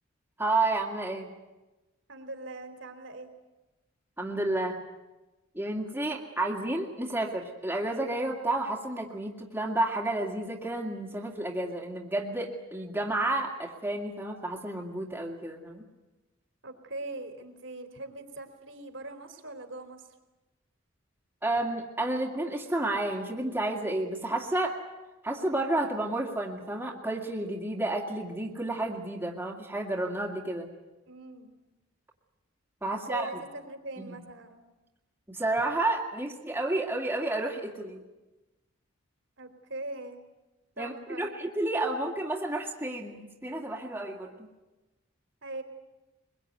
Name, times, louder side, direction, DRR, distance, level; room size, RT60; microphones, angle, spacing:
voice 1, 0.4-1.3 4.2-4.8 5.6-15.8 21.4-24.8 25.2-30.7 32.8-33.3 34.0-34.2 35.3-38.0 40.8-44.3, right 2 dB, 10° right, -1 dB, 2.2 m, -31 dB
voice 2, 2.1-3.3 16.6-20.1 31.1-31.5 33.1-34.6 39.4-40.2 40.8-41.3 45.4-45.6, right 2 dB, 65° right, 6 dB, 3.5 m, -41 dB
23.0 x 22.0 x 9.4 m, 1.1 s
head